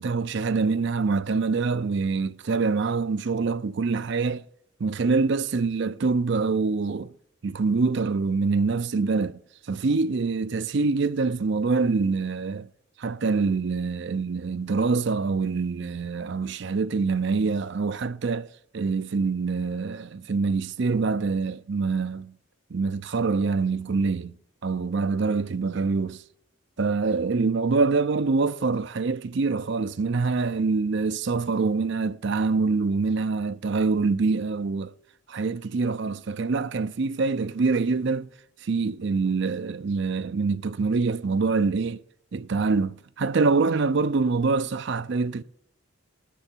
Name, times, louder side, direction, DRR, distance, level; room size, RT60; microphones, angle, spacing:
voice 1, 0.0-4.4 4.8-7.1 7.4-9.4 9.7-12.7 13.0-18.5 18.7-22.3 22.7-24.3 24.6-26.2 26.8-34.9 35.3-38.3 38.6-42.0 42.3-45.4, right 4 dB, 55° right, 0.5 m, -25 dB
18.5 x 10.0 x 4.5 m
head